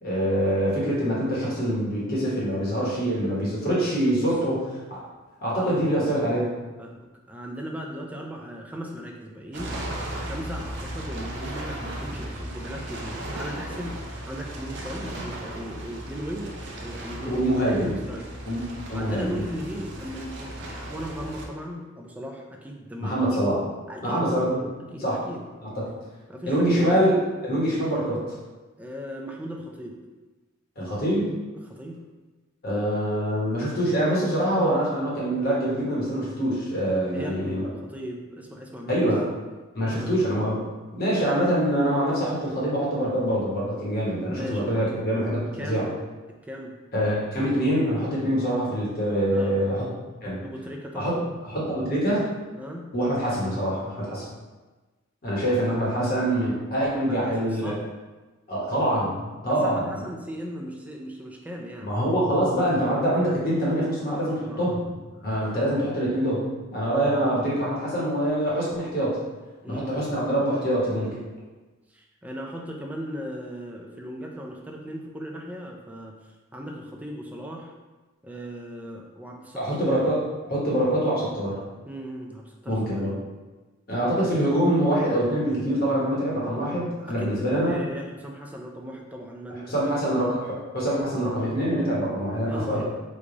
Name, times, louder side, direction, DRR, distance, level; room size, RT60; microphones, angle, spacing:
voice 1, 0.0-4.6 4.9-5.0 5.4-6.5 17.3-17.9 18.4-19.4 23.0-23.6 24.0-24.6 25.0-25.2 25.6-25.8 26.5-27.2 27.4-28.3 30.8-31.4 32.6-37.6 38.9-39.2 39.7-40.6 40.9-45.9 46.9-49.8 50.2-50.4 50.9-51.2 51.5-52.2 52.9-54.2 55.2-57.7 58.5-59.9 61.8-64.9 65.2-66.4 66.7-69.2 69.7-71.1 79.6-80.2 80.5-81.6 82.7-83.1 83.9-87.7 89.7-92.8, equal, 50° left, -6 dB, 1.1 m, -25 dB
voice 2, 6.8-18.6 18.9-23.3 23.9-24.3 24.8-25.4 25.7-25.8 26.3-27.1 28.8-30.0 31.6-32.0 37.1-39.1 39.8-40.3 44.2-45.9 46.4-46.8 49.3-49.8 50.4-51.3 52.6-52.9 57.0-57.8 59.4-61.9 64.4-64.9 65.2-65.5 69.6-70.1 71.0-71.3 71.9-77.7 78.2-80.0 81.9-82.8 83.1-83.3 87.0-90.2 92.5-92.8, equal, 5° right, 0 dB, 0.4 m, -38 dB
sound 1, 9.5-21.5, right 1 dB, 60° right, 0.5 m, -36 dB
3.2 x 2.3 x 3.8 m, 1.2 s
head